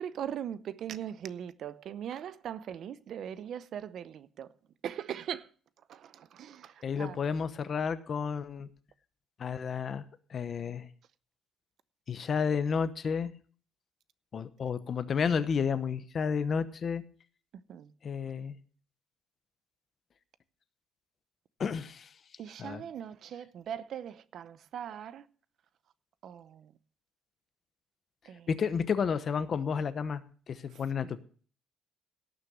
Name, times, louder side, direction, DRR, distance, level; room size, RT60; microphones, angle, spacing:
voice 1, 0.0-4.5 4.8-5.5 5.9-7.2 17.7-17.9 22.4-25.2 26.2-26.7 28.3-28.5 31.0-31.1, right 9 dB, 45° right, 0.7 m, -40 dB
voice 2, 6.8-8.7 9.4-10.0 10.3-10.9 12.1-13.3 14.3-17.0 18.0-18.6 21.6-22.1 22.6-22.8 28.5-30.2 30.5-31.2, left 6 dB, 30° left, 0.9 m, -31 dB
17.5 x 6.6 x 6.2 m
cardioid pair, 165°, 0 cm